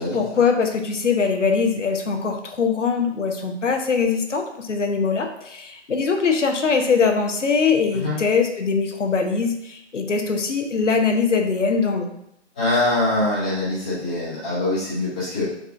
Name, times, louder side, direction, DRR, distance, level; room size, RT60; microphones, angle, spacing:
voice 1, 0.1-12.1, left 5 dB, 90° left, 4 dB, 0.7 m, -22 dB
voice 2, 12.6-15.4, left 2 dB, 10° left, -11 dB, 0.4 m, -23 dB
4.9 x 2.4 x 2.5 m, 0.76 s
figure-of-eight pair, 135°, 36 cm